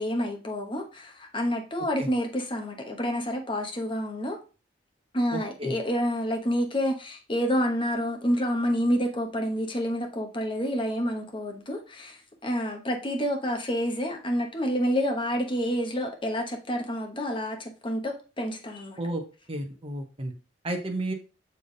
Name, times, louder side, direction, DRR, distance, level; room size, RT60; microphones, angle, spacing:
voice 1, 0.0-4.4 5.1-19.0, equal, 25° left, 2 dB, 1.1 m, -28 dB
voice 2, 5.3-5.7 19.0-19.2 19.5-20.3 20.6-21.1, right 1 dB, 30° right, 3 dB, 1.0 m, -32 dB
6.9 x 3.5 x 3.9 m, 0.34 s
head